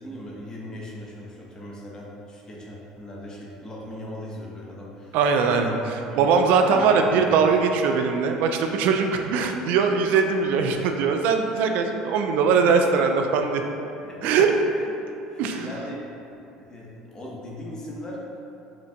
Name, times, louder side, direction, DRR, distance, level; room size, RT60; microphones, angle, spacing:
voice 1, 0.0-7.2 10.8-10.9 14.0-14.5 14.8-14.9 15.3-16.1 16.6-18.2, left 1 dB, 25° left, -4 dB, 0.8 m, -39 dB
voice 2, 5.1-5.7 6.2-13.6 14.2-14.5 15.4-15.7, right 5 dB, 60° right, 4 dB, 0.3 m, -21 dB
5.7 x 2.5 x 2.2 m, 2.8 s
hypercardioid pair, 65°, 3 cm